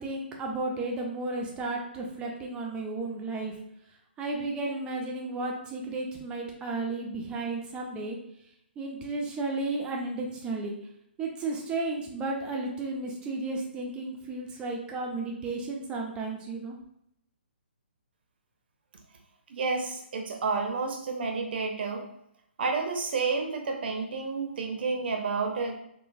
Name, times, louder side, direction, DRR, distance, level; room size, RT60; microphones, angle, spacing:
voice 1, 0.0-3.5 4.2-8.2 8.8-10.8 11.2-16.8, right 3 dB, 15° right, 0 dB, 0.5 m, -33 dB
voice 2, 19.5-22.1 22.6-25.8, right 4 dB, 55° right, 3 dB, 0.7 m, -30 dB
3.9 x 2.2 x 2.6 m, 0.75 s
figure-of-eight pair, 135°, 6 cm